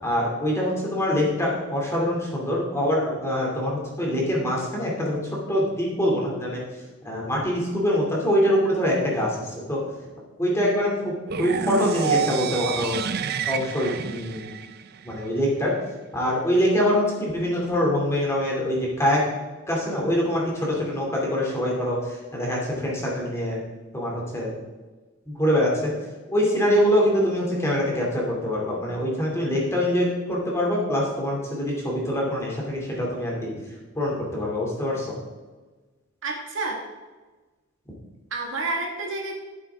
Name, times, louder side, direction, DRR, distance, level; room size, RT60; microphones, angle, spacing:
voice 1, 0.0-5.2 5.5-6.6 7.0-9.3 9.7-9.8 10.4-11.1 11.4-13.0 13.5-14.4 15.1-15.7 16.1-19.2 19.7-22.0 22.3-23.6 23.9-24.5 25.4-25.7 26.3-33.5 34.0-35.1, equal, 10° left, -3 dB, 2.5 m, -24 dB
sound 1, 11.3-15.3, right 6 dB, 45° right, 0.4 m, -28 dB
voice 2, 36.2-36.8 38.3-39.4, right 3 dB, 60° right, 0 dB, 1.8 m, -29 dB
14.0 x 7.8 x 3.6 m, 1.3 s
head